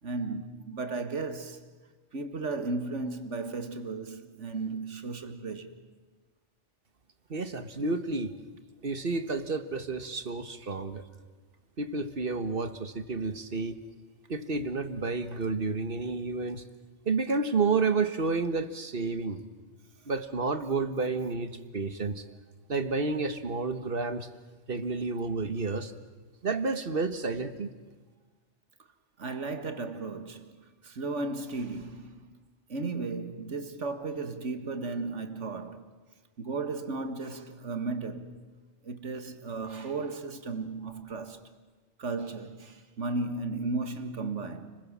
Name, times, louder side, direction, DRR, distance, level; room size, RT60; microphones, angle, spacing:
voice 1, 0.0-1.6 2.1-5.7 29.2-30.5 30.8-32.3 32.7-35.9 36.4-38.4 38.8-41.4 42.0-44.8, right 3 dB, 80° right, 2.1 m, -35 dB
voice 2, 7.3-8.3 8.8-11.0 11.8-13.8 14.3-16.6 17.1-19.4 20.1-22.2 22.7-24.3 24.7-25.9 26.4-27.7, right 4 dB, 50° right, 1.6 m, -30 dB
29.5 x 21.0 x 7.4 m
omnidirectional pair, 1.2 m